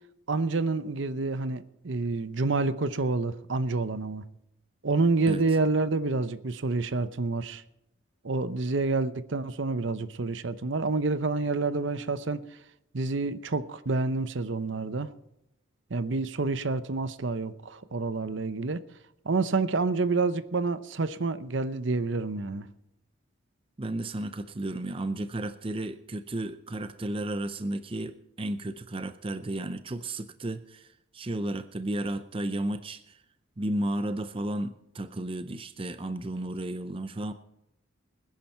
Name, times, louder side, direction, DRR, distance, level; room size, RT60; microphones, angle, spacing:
voice 1, 0.3-4.3 4.8-7.6 8.2-12.4 12.9-15.1 15.9-18.8 19.2-22.7, right 3 dB, 65° right, 14 dB, 0.7 m, -28 dB
voice 2, 23.8-33.2 33.6-37.3, right 1 dB, 25° right, 11 dB, 0.5 m, -33 dB
20.5 x 10.5 x 4.4 m, 0.87 s
head